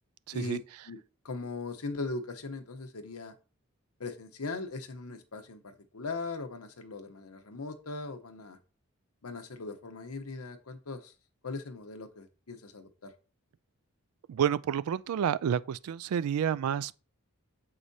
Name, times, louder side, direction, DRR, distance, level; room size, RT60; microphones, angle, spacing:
voice 1, 0.3-0.6 14.3-17.0, right 8 dB, 80° right, 0.3 m, -29 dB
voice 2, 1.2-3.3 4.0-8.6 9.2-11.1 11.4-13.1, left 3 dB, 90° left, 0.9 m, -39 dB
7.3 x 4.8 x 2.7 m
head